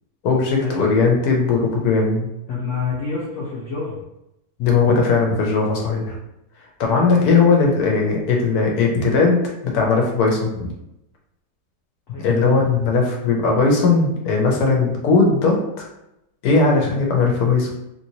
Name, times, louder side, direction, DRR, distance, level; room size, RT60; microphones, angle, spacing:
voice 1, 0.2-2.3 4.6-6.1 6.8-9.4 9.6-10.7 12.2-15.9 16.4-17.7, left 4 dB, 75° left, 0 dB, 1.3 m, -18 dB
voice 2, 2.5-4.0 12.1-12.6, left 4 dB, 60° left, -6 dB, 1.0 m, -28 dB
3.0 x 3.0 x 2.8 m, 0.85 s
omnidirectional pair, 1.7 m